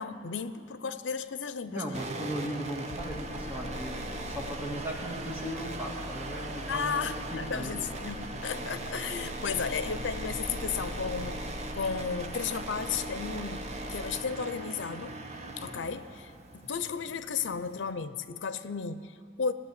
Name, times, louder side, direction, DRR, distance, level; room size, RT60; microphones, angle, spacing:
voice 1, 0.0-1.8 6.7-11.4 11.7-15.2 15.6-19.5, left 6 dB, 85° left, 13 dB, 0.6 m, -34 dB
voice 2, 1.7-7.9, equal, 10° right, -1 dB, 1.8 m, -37 dB
sound 1, 1.9-17.9, right 2 dB, 35° right, 0.9 m, -40 dB
sound 2, 2.9-14.2, left 1 dB, 25° left, 1.4 m, -43 dB
16.5 x 7.6 x 9.7 m, 2.4 s
head